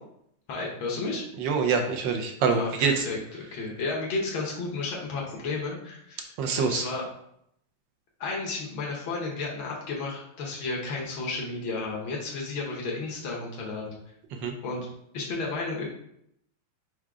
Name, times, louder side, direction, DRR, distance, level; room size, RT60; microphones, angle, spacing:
voice 1, 0.5-1.2 2.5-6.2 6.6-7.0 8.2-14.0 14.6-14.9 15.1-15.8, left 3 dB, 75° left, -2 dB, 1.7 m, -32 dB
voice 2, 1.4-3.0 6.4-6.9 14.4-14.5, right 5 dB, 75° right, 4 dB, 1.2 m, -25 dB
4.7 x 2.2 x 4.7 m, 0.74 s
omnidirectional pair, 2.3 m